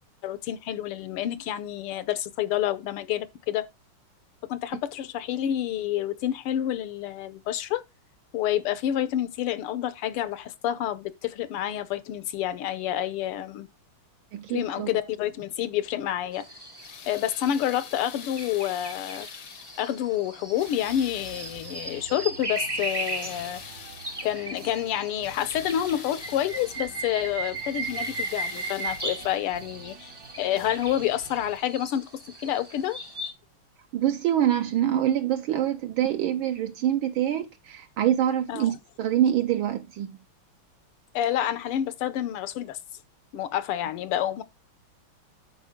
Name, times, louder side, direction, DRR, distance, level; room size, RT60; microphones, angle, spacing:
voice 1, 0.2-3.6 4.5-7.8 8.3-13.7 14.5-16.5 17.1-19.3 19.8-23.6 24.2-30.1 30.4-33.0 38.5-38.7 41.1-42.8 43.3-44.4, left 11 dB, 80° left, 1.7 m, -28 dB
voice 2, 14.3-14.9 33.9-40.2, right 11 dB, 75° right, 1.4 m, -25 dB
sound 1, 16.3-33.3, right 2 dB, 30° right, 0.4 m, -37 dB
sound 2, 16.6-20.1 20.5-22.1 22.5-24.5 24.9-27.0 27.5-29.6 30.7-30.8 31.4-31.5, left 10 dB, 65° left, 1.1 m, -45 dB
sound 3, 20.6-31.6, right 6 dB, 55° right, 1.1 m, -48 dB
12.0 x 4.6 x 3.6 m
omnidirectional pair, 2.4 m